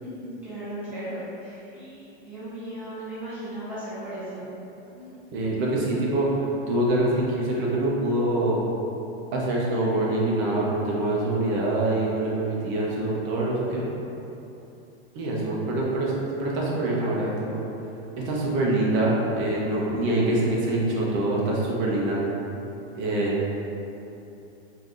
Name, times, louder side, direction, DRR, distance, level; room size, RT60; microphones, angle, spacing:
voice 1, 0.0-4.4 4.9-5.1, right 1 dB, 5° right, -14 dB, 1.2 m, -36 dB
voice 2, 5.3-6.3 6.7-8.6 9.3-13.8 15.1-16.1 16.4-17.6 18.2-22.2 22.9-23.3, right 1 dB, 35° right, -4 dB, 0.8 m, -25 dB
4.7 x 3.4 x 2.5 m, 3.0 s
supercardioid pair, 150°, 34 cm